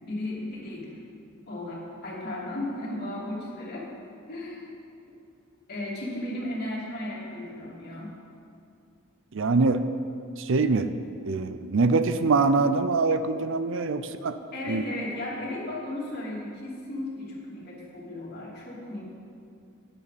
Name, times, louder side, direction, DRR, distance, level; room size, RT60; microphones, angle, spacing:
voice 1, 0.0-1.0 1.5-3.9 4.3-4.7 5.7-8.1 14.5-19.0, left 1 dB, 50° left, -5 dB, 3.0 m, -35 dB
voice 2, 9.3-9.8 10.4-10.9 11.2-14.4 14.7-14.8, right 3 dB, 60° right, 11 dB, 0.5 m, -24 dB
14.5 x 10.0 x 4.2 m, 2.4 s
head